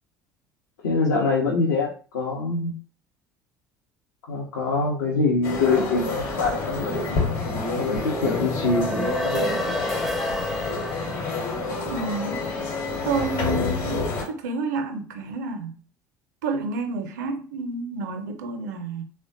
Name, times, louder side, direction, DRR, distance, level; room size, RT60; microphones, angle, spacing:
voice 1, 0.8-2.7 4.3-7.4 7.8-9.8, left 3 dB, 75° left, 0.6 m, -24 dB
sound 1, 5.4-14.3, left 3 dB, 55° left, 1.0 m, -28 dB
sound 2, 8.5-13.1, left 1 dB, ahead, 0.4 m, -31 dB
voice 2, 11.9-12.6 13.0-15.8 16.4-19.0, right 3 dB, 70° right, 0.5 m, -30 dB
3.3 x 2.1 x 2.6 m
figure-of-eight pair, 60°, 10 cm